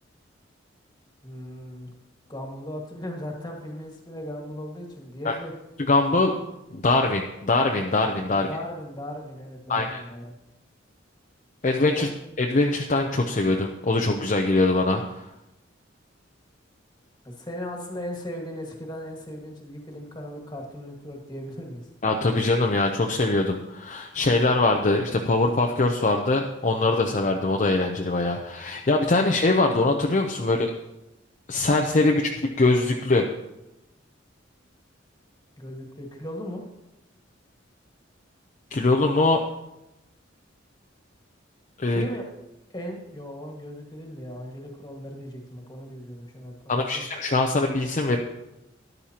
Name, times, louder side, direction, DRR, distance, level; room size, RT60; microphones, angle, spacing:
voice 1, 1.2-1.9 2.3-5.5 8.3-10.3 12.0-12.1 17.2-21.8 35.6-36.6 41.8-42.3 42.7-47.1, equal, 20° left, 1 dB, 1.7 m, -37 dB
voice 2, 5.8-6.4 6.7-8.5 9.7-10.0 11.6-12.1 12.4-15.2 22.0-30.7 31.5-32.3 32.6-33.2 38.7-39.4 41.8-42.1 46.7-48.2, left 2 dB, 40° left, 2 dB, 0.6 m, -22 dB
13.0 x 11.0 x 2.9 m, 0.95 s
head